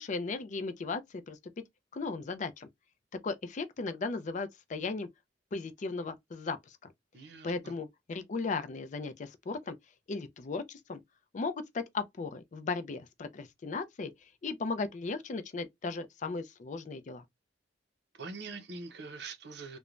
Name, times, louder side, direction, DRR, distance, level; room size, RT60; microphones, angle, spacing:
voice 1, 0.0-1.4 1.9-2.7 3.2-5.1 5.5-6.8 7.4-9.8 10.1-11.0 11.3-14.1 14.4-17.2, left 4 dB, 45° left, 0.4 m, -36 dB
voice 2, 7.1-7.7 18.1-19.8, right 4 dB, 65° right, 0.6 m, -44 dB
3.1 x 2.1 x 2.4 m
head